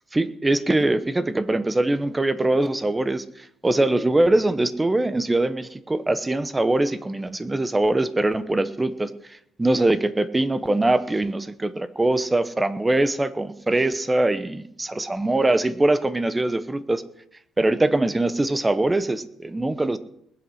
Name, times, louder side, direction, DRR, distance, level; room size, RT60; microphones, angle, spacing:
voice 1, 0.1-3.2 3.6-9.1 9.6-17.0 17.6-20.0, right 2 dB, 10° right, 14 dB, 0.9 m, -22 dB
20.5 x 8.1 x 6.4 m, 0.73 s
cardioid pair, 130°, 0 cm